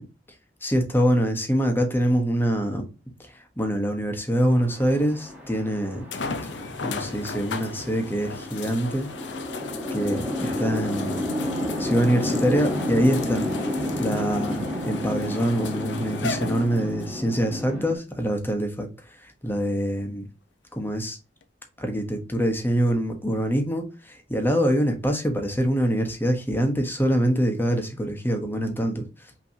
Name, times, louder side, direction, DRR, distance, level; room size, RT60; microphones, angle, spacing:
voice 1, 0.6-2.9 3.2-6.0 6.4-9.1 9.9-11.2 11.8-13.5 13.7-20.3 20.7-21.2 21.8-29.0, equal, 10° left, 1.1 m, -25 dB
Chatter / Traffic noise roadway noise / Train, 4.5-17.9, left 1 dB, 10° right, 1.5 m, -31 dB
sound 1, 5.0-5.1 6.1-17.1 17.9-18.0 21.4-21.5, left 4 dB, 80° left, 0.6 m, -36 dB
5.7 x 3.1 x 2.8 m
head